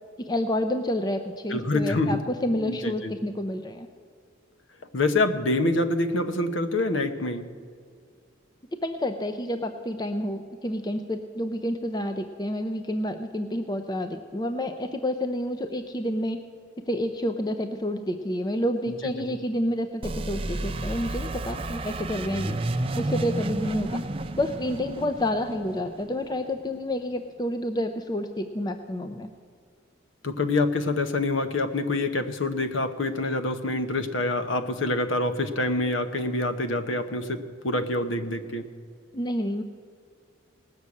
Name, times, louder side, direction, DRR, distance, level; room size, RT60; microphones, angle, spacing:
voice 1, 0.2-3.9 8.8-16.4 16.9-22.6 22.9-24.0 24.3-29.3 39.1-39.6, left 1 dB, 20° left, 7 dB, 0.5 m, -29 dB
voice 2, 1.5-2.2 2.6-3.1 4.9-7.4 19.0-19.4 30.2-38.7, left 2 dB, 85° left, 8 dB, 0.9 m, -26 dB
sound 1, 20.0-26.6, right 2 dB, 30° right, 0.6 m, -31 dB
18.5 x 6.4 x 8.4 m, 2.2 s
head